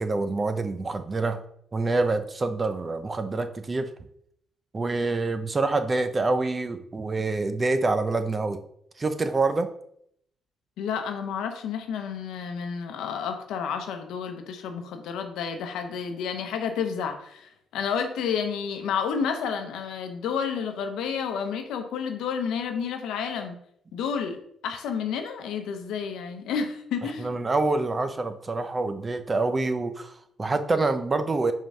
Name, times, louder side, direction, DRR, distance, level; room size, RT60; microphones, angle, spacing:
voice 1, 0.0-1.4 1.7-3.9 4.7-8.6 9.0-9.7 27.0-31.5, right 3 dB, 30° right, 9 dB, 0.6 m, -26 dB
voice 2, 10.8-23.6 23.9-24.4 24.6-27.3, left 6 dB, 85° left, 6 dB, 0.9 m, -30 dB
5.0 x 3.7 x 5.4 m, 0.70 s
cardioid pair, 90°, 0 cm